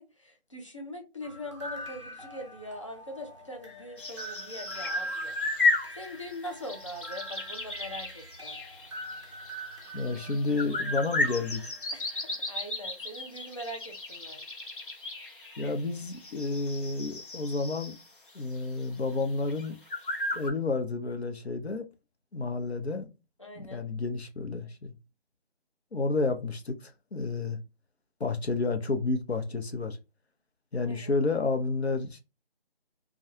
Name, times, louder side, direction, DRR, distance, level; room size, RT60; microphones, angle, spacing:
voice 1, 0.0-5.4 6.0-8.6 11.9-14.4 23.4-23.9 30.8-31.1, left 1 dB, 30° left, 0.5 m, -42 dB
sound 1, 1.2-12.0, right 1 dB, 30° right, 0.5 m, -43 dB
sound 2, 4.0-18.3 18.6-18.7 19.1-19.2 19.5-20.5, left 2 dB, 55° left, 0.9 m, -34 dB
voice 2, 9.9-11.6 15.6-18.0 18.3-19.8 20.3-21.8 22.3-23.1 23.6-24.9 25.9-27.6 28.2-30.0 30.7-32.2, left 3 dB, 80° left, 0.7 m, -30 dB
2.3 x 2.3 x 2.9 m
figure-of-eight pair, 160°, 32 cm